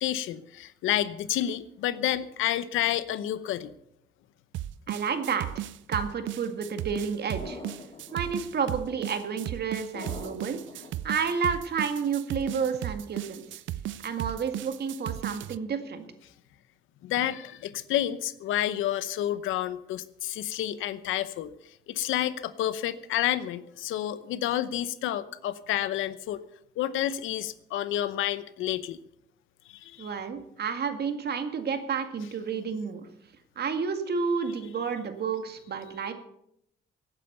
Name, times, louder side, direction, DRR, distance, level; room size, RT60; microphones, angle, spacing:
voice 1, 0.0-3.7 17.0-21.5 21.9-26.4 26.8-29.0 29.7-30.1, left 12 dB, 90° left, 15 dB, 0.9 m, -29 dB
sound 1, 4.5-15.6, right 13 dB, 75° right, 0.5 m, -35 dB
voice 2, 4.9-7.6 8.1-13.6 14.0-16.0 30.0-33.1 33.6-36.1, right 6 dB, 55° right, 7 dB, 2.1 m, -31 dB
sound 2, 7.4-8.3 9.9-10.9, left 3 dB, 30° left, 3.7 m, -42 dB
17.5 x 9.1 x 6.7 m, 0.78 s
cardioid pair, 90°, 20 cm